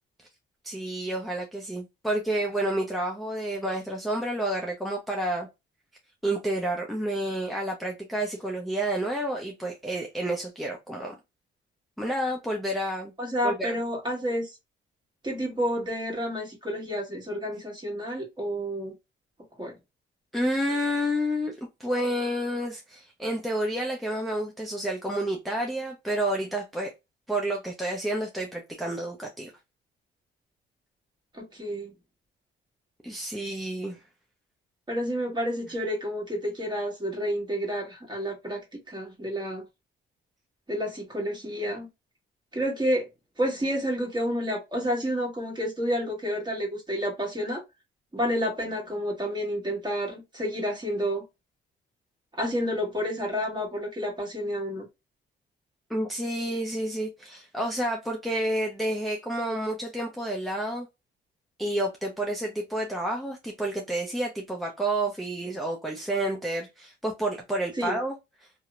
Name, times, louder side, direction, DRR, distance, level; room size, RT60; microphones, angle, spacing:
voice 1, 0.6-5.5 6.2-11.1 12.0-13.1 13.4-13.7 20.3-26.9 27.3-29.5 33.0-34.0 55.9-60.9 61.6-68.1, right 1 dB, ahead, 0.5 m, -30 dB
voice 2, 13.2-14.6 15.2-18.9 19.6-19.7 31.3-31.9 34.9-38.6 38.9-39.6 40.7-41.9 42.5-43.0 43.4-47.6 48.1-51.2 52.3-54.9 67.8-68.0, equal, 20° right, 1.3 m, -30 dB
2.7 x 2.0 x 2.3 m
cardioid pair, 90°, 20 cm